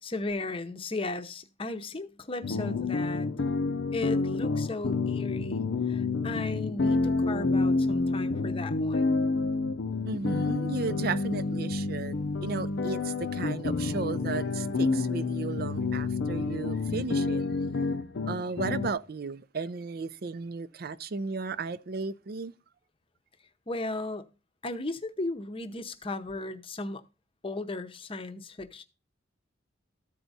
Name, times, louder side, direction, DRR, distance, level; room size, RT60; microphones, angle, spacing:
voice 1, 0.0-3.3 3.9-9.1 23.7-24.3 24.6-27.0 27.4-28.8, left 2 dB, 30° left, 0.7 m, -36 dB
sound 1, 2.4-18.9, left 3 dB, 75° left, 0.6 m, -29 dB
voice 2, 10.1-17.4 18.3-22.5, right 4 dB, 50° right, 0.5 m, -35 dB
13.5 x 4.6 x 4.0 m
head